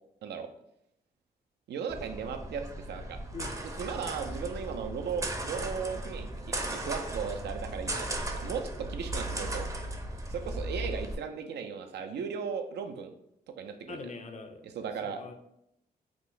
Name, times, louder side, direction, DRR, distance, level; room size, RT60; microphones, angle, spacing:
voice 1, 1.7-3.2 3.8-9.7 10.3-13.2 13.6-14.0 14.6-15.2, right 6 dB, 85° right, 5 dB, 0.4 m, -36 dB
sound 1, 1.9-11.2, right 1 dB, 20° right, 0.5 m, -36 dB
voice 2, 13.9-14.6 15.0-15.3, left 4 dB, 45° left, 6 dB, 0.5 m, -42 dB
2.9 x 2.0 x 3.8 m, 0.78 s
cardioid pair, 55°, 17 cm